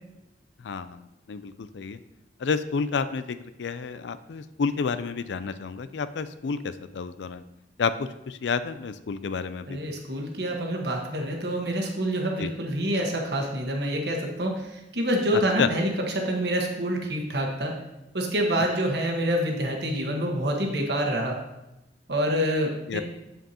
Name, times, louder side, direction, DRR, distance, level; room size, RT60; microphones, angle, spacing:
voice 1, 0.6-2.0 2.4-7.4 7.8-9.9 12.4-12.5 15.6-15.7 22.9-23.0, left 5 dB, 80° left, 12 dB, 0.4 m, -30 dB
voice 2, 9.7-17.7 18.1-21.4 22.1-23.0, equal, 65° right, 1 dB, 1.4 m, -27 dB
7.8 x 7.6 x 2.9 m, 0.93 s
head